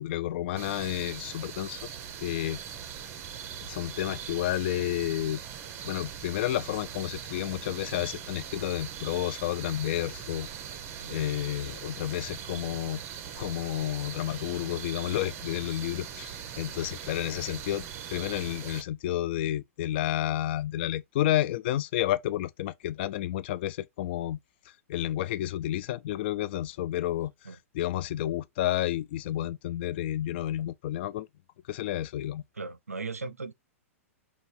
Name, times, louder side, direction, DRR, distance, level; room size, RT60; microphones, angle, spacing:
voice 1, 0.0-1.8 2.2-2.6 3.7-5.4 5.8-10.5 11.1-13.0 13.4-17.9 18.1-24.4 24.9-31.3 31.7-32.4, left 13 dB, 45° left, 0.4 m, -31 dB
sound 1, 0.6-18.8, right 8 dB, 30° right, 0.7 m, -41 dB
voice 2, 32.6-33.5, right 3 dB, 85° right, 0.5 m, -37 dB
5.2 x 2.3 x 4.0 m
figure-of-eight pair, 105°, 8 cm